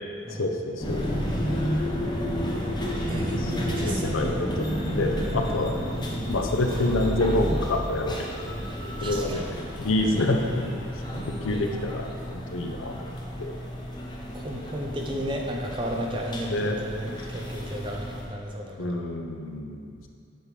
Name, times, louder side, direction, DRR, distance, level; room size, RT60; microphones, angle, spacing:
voice 1, 0.4-1.1 3.4-5.7 6.3-8.4 9.0-11.0 11.4-13.1 13.4-13.5 16.5-16.8 17.3-17.4 18.8-20.1, left 2 dB, 85° left, 3 dB, 0.6 m, -28 dB
sound 1, 0.8-18.3, equal, 20° left, 0.8 m, -31 dB
voice 2, 3.1-4.4 9.0-9.4 14.3-19.0, equal, 25° right, 0 dB, 0.6 m, -33 dB
7.8 x 5.3 x 3.3 m, 2.4 s
head